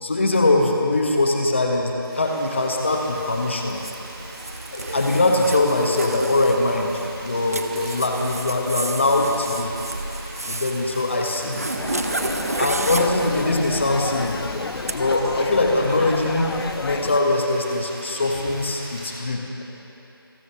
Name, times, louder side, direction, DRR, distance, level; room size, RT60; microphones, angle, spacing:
voice 1, 0.0-3.8 4.7-9.7 10.5-11.7 12.6-14.4 14.9-16.5 16.8-19.6, left 2 dB, 30° left, 2 dB, 0.9 m, -22 dB
sound 1, 2.0-19.1, right 1 dB, 20° right, 2.9 m, -41 dB
Zipper (clothing), 2.8-15.0, right 2 dB, 40° right, 0.4 m, -32 dB
sound 2, 11.8-17.2, left 4 dB, 75° left, 0.4 m, -31 dB
27.0 x 9.1 x 2.8 m, 3.0 s
figure-of-eight pair, 175°, 13 cm